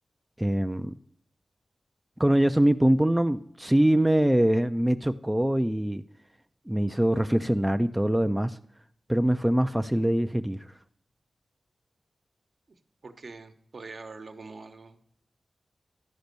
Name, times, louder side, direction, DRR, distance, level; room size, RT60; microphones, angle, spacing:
voice 1, 0.4-0.9 2.2-6.0 6.7-8.6 9.1-10.7, right 1 dB, 10° right, 8 dB, 0.4 m, -23 dB
voice 2, 13.0-15.0, right 3 dB, 55° right, 7 dB, 1.0 m, -44 dB
11.5 x 5.2 x 6.7 m, 0.66 s
wide cardioid pair, 120°, 0 cm